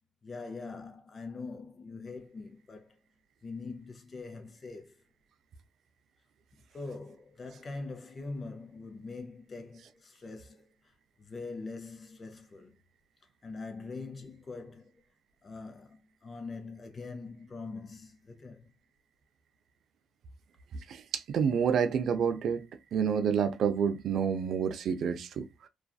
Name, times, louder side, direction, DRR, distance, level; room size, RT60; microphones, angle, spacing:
voice 1, 0.2-3.0 3.4-5.0 6.7-10.7 11.2-12.8 13.4-15.0 15.4-18.7, left 3 dB, 35° left, 0.6 m, -43 dB
voice 2, 20.9-22.7 22.9-25.7, right 7 dB, 65° right, 0.4 m, -29 dB
2.4 x 2.4 x 2.3 m
cardioid pair, 90°, 0 cm